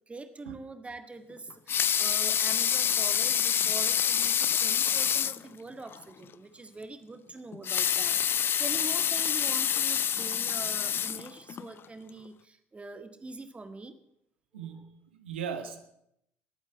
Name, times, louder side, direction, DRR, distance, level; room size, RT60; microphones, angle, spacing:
voice 1, 0.1-13.9 14.6-14.9, right 3 dB, 20° right, 9 dB, 1.6 m, -44 dB
Water tap faucet / Sink (filling or washing) / Liquid, 1.5-5.5 5.9-6.0 6.3-6.4 7.5-11.7 12.3-12.4, left 8 dB, 35° left, 0.5 m, -27 dB
voice 2, 14.5-15.8, right 7 dB, 75° right, 7 dB, 1.3 m, -38 dB
19.0 x 8.8 x 8.2 m, 0.76 s
figure-of-eight pair, 55°, 6 cm